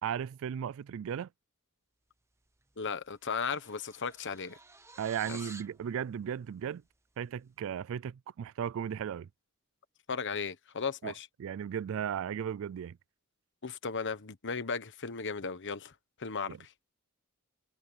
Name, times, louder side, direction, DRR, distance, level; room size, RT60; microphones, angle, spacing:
voice 1, 0.0-1.3 5.0-6.8 7.2-9.3 11.0-11.1 11.4-13.0 16.5-16.6, right 8 dB, 65° right, 0.3 m, -36 dB
sound 1, 2.6-2.8 3.1-5.8, right 3 dB, 15° right, 1.0 m, -51 dB
voice 2, 2.8-4.6 5.3-5.4 10.1-11.3 13.6-16.7, left 5 dB, 55° left, 1.2 m, -36 dB
head